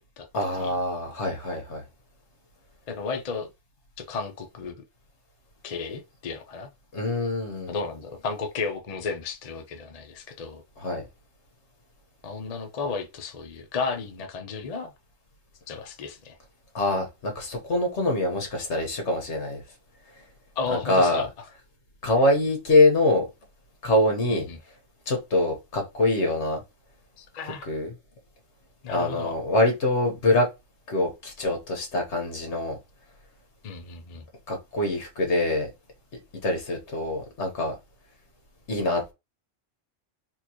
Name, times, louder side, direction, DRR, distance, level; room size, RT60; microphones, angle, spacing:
voice 1, 0.3-1.8 6.9-7.7 10.8-11.0 16.7-19.6 20.7-21.3 22.0-23.2 23.8-24.5 25.1-26.6 27.4-27.9 28.9-30.5 30.9-32.7 34.5-35.7 36.4-37.7 38.7-39.1, left 2 dB, 65° left, 1.5 m, -24 dB
voice 2, 2.9-3.5 4.0-4.8 5.6-6.7 7.7-10.6 12.2-14.9 15.7-16.4 20.6-21.3 24.3-24.6 27.2-27.7 28.8-29.4 33.6-34.2, left 4 dB, 45° left, 0.5 m, -33 dB
4.3 x 2.4 x 2.9 m
omnidirectional pair, 1.3 m